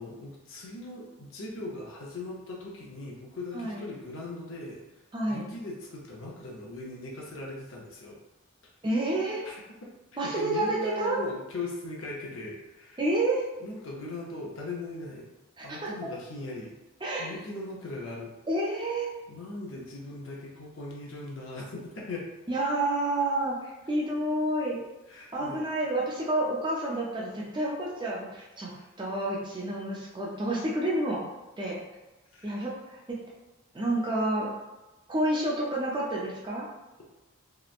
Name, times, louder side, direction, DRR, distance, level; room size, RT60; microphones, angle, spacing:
voice 1, 0.0-5.0 5.3-8.2 9.4-9.5 10.1-13.0 13.6-15.3 15.6-16.7 17.2-18.3 19.3-22.3 25.1-25.6 28.7-28.9 32.3-32.6, left 2 dB, 70° left, -3 dB, 0.6 m, -39 dB
voice 2, 3.5-3.9 5.1-5.4 8.8-9.4 10.2-11.2 13.0-13.4 15.6-15.9 17.0-17.4 18.5-19.1 22.5-24.8 25.3-28.7 29.0-31.3 31.6-31.8 32.4-33.0 33.7-34.5 35.1-36.7, right 1 dB, 20° right, -4 dB, 0.4 m, -29 dB
2.9 x 2.1 x 2.4 m, 1.1 s
head